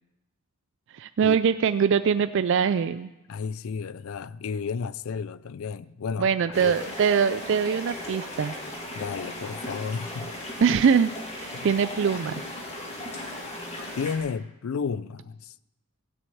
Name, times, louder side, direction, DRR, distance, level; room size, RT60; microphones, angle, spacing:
voice 1, 0.9-3.1 6.2-8.6 10.6-11.1 11.4-12.4, right 6 dB, 55° right, 0.3 m, -23 dB
voice 2, 3.3-6.7 8.9-10.3 11.5-11.7 14.0-15.5, left 5 dB, 70° left, 0.4 m, -32 dB
sound 1, 6.5-14.2, left 1 dB, 30° left, 2.3 m, -37 dB
16.0 x 6.4 x 8.5 m
head